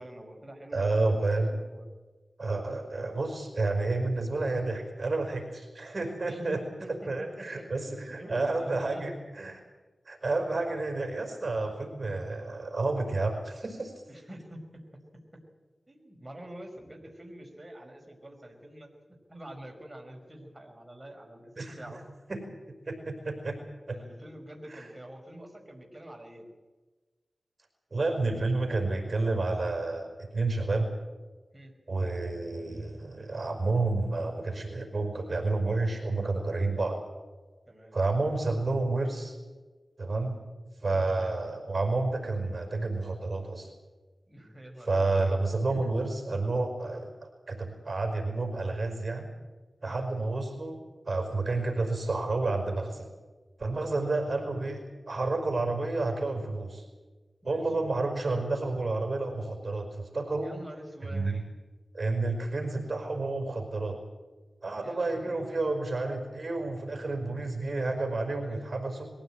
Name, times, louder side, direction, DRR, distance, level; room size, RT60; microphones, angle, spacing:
voice 1, 0.0-1.9 2.6-2.8 6.3-9.1 14.1-14.8 15.1-15.4 15.9-18.9 19.3-22.1 23.9-26.5 31.5-31.7 37.7-38.0 40.9-41.0 44.3-45.4 45.7-45.9 49.8-50.0 53.8-54.1 57.4-57.6 60.4-61.5 64.8-65.5 68.4-68.6, right 1 dB, 20° right, 1 dB, 5.4 m, -46 dB
voice 2, 0.7-1.5 2.4-6.6 6.9-9.6 10.1-13.9 21.6-21.8 22.3-22.4 22.8-23.6 23.9-24.0 24.7-24.9 27.9-30.9 31.9-37.0 37.9-39.4 40.0-40.4 40.8-43.7 44.9-49.3 49.8-50.8 51.1-53.1 53.6-56.9 57.4-60.5 61.1-61.4 61.9-64.0 64.6-69.1, right 3 dB, 50° right, 4 dB, 5.3 m, -30 dB
22.5 x 16.0 x 8.9 m, 1.3 s
cardioid pair, 45°, 0 cm